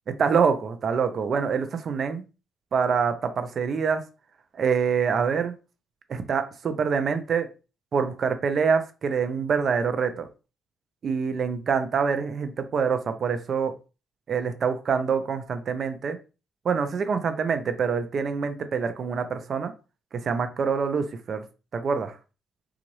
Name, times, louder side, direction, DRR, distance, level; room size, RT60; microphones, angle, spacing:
voice 1, 0.2-2.2 2.7-4.0 4.5-5.5 6.1-7.5 7.9-10.3 11.0-13.7 14.3-16.2 16.6-19.7 20.1-21.4 21.7-22.2, right 6 dB, 50° right, 9 dB, 0.6 m, -25 dB
4.0 x 2.4 x 3.1 m, 0.32 s
cardioid pair, 90°, 0 cm